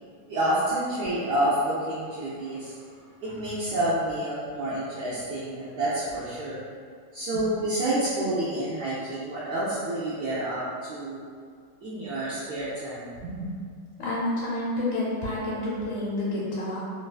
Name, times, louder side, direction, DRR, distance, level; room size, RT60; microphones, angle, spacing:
voice 1, 0.2-2.8 3.2-6.6 7.1-11.2 11.8-13.5, right 1 dB, 75° right, -10 dB, 0.9 m, -29 dB
voice 2, 14.0-16.8, left 1 dB, 75° left, -7 dB, 1.3 m, -29 dB
3.2 x 2.2 x 2.3 m, 2.1 s
omnidirectional pair, 2.2 m